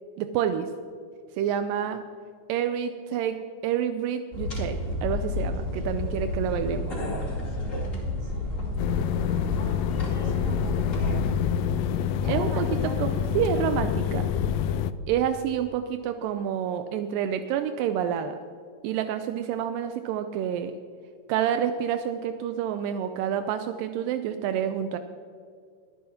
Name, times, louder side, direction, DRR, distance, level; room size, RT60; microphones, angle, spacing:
voice 1, 0.2-0.7 1.4-2.0 2.5-3.4 3.6-7.0 12.3-12.7 13.0-14.3 15.1-18.4 18.8-20.7 21.3-25.0, right 9 dB, 85° right, 8 dB, 2.2 m, -28 dB
sound 1, 4.3-11.3, left 2 dB, 25° left, 2.5 m, -30 dB
voice 2, 7.3-11.4 12.2-13.0, right 3 dB, 50° right, 0 dB, 2.8 m, -44 dB
sound 2, 8.8-14.9, left 9 dB, 85° left, 2.2 m, -27 dB
23.0 x 9.4 x 2.8 m, 2.3 s
omnidirectional pair, 3.9 m